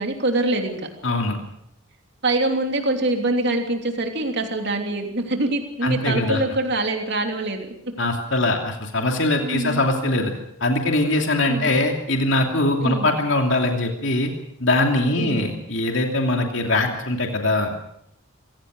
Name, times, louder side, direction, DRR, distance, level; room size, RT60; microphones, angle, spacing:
voice 1, 0.0-0.9 2.2-7.7 9.4-9.8 11.5-11.7 12.8-13.1 15.2-15.5, right 2 dB, 50° right, 4 dB, 3.3 m, -24 dB
voice 2, 1.0-1.4 5.8-6.4 8.0-10.3 10.6-14.3 14.6-17.7, left 2 dB, 60° left, 3 dB, 2.9 m, -22 dB
25.5 x 17.0 x 6.5 m, 0.74 s
head